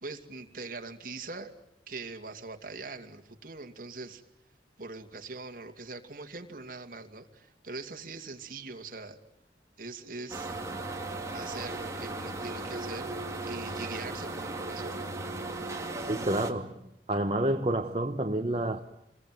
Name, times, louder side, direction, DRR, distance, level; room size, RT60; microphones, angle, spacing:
voice 1, 0.0-1.5 1.9-4.2 4.8-9.2 9.8-10.6 11.3-13.2 13.4-15.1, right 3 dB, 50° right, 2.5 m, -42 dB
sound 1, 10.3-16.5, right 2 dB, 15° right, 2.6 m, -36 dB
voice 2, 16.1-16.8 17.1-18.8, right 1 dB, 35° right, 1.2 m, -29 dB
27.5 x 22.0 x 9.3 m
head